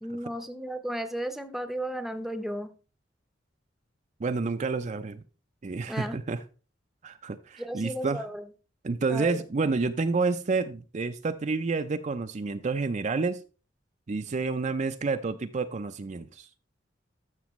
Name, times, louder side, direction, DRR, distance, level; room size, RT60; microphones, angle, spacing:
voice 1, 0.0-2.7 5.9-6.2 7.6-8.4 9.1-9.4, right 1 dB, ahead, 0.7 m, -34 dB
voice 2, 4.2-5.2 5.6-6.4 7.0-8.2 8.8-13.4 14.1-16.5, right 4 dB, 40° right, 0.5 m, -29 dB
13.0 x 6.1 x 3.1 m
head